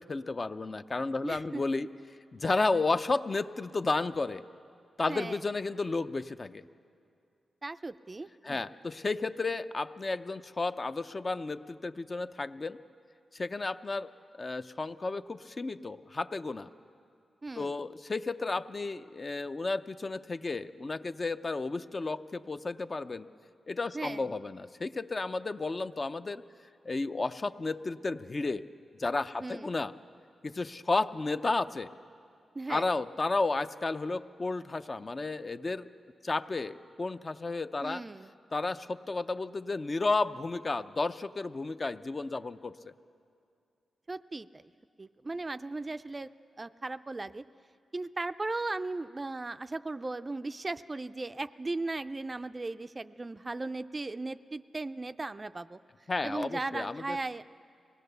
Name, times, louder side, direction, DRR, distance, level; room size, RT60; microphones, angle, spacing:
voice 1, 0.0-1.9 2.3-4.5 5.0-6.6 8.4-12.8 13.3-14.1 14.4-16.7 17.6-23.3 23.7-26.4 26.8-28.7 29.0-29.9 30.4-31.9 32.7-35.9 36.2-38.0 38.5-42.9 56.1-57.2, left 3 dB, 35° left, 11 dB, 0.5 m, -32 dB
voice 2, 1.2-1.6 5.1-5.4 7.6-8.6 17.4-17.8 23.9-24.3 29.4-29.7 32.5-32.9 37.8-38.3 44.1-44.7 45.0-46.3 46.6-47.4 47.9-55.8 56.2-57.4, right 2 dB, 25° right, 12 dB, 0.4 m, -37 dB
24.0 x 18.5 x 6.8 m, 2.4 s
wide cardioid pair, 95°, 0 cm